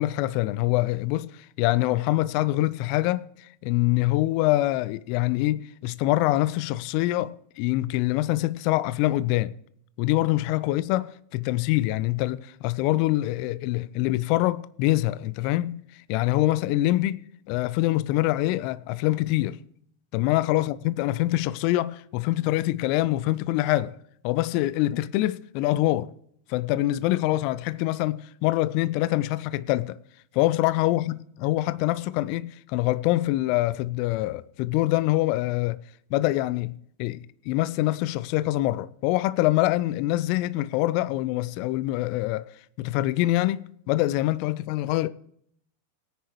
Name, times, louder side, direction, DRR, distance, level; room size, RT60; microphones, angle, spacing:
voice 1, 0.0-9.5 10.0-17.2 17.5-19.6 20.1-23.9 24.2-26.1 26.5-30.0 30.3-35.8 36.1-36.7 37.0-42.5 42.8-45.1, left 16 dB, 45° left, 0.5 m, -25 dB
18.0 x 10.0 x 3.1 m
figure-of-eight pair, 90°, 0 cm